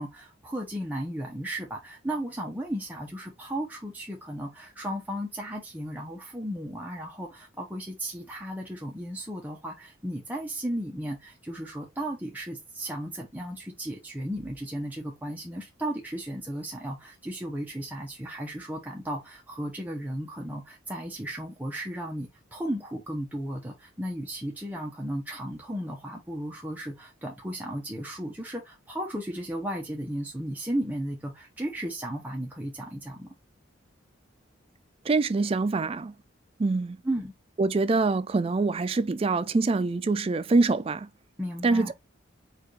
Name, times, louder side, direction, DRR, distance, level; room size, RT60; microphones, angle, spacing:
voice 1, 0.0-33.3 37.0-37.3 41.4-41.9, right 1 dB, 10° right, 0.7 m, -35 dB
voice 2, 35.1-36.1 36.6-37.0 37.6-41.1 41.6-41.9, right 3 dB, 30° right, 0.3 m, -25 dB
4.8 x 2.5 x 3.9 m
head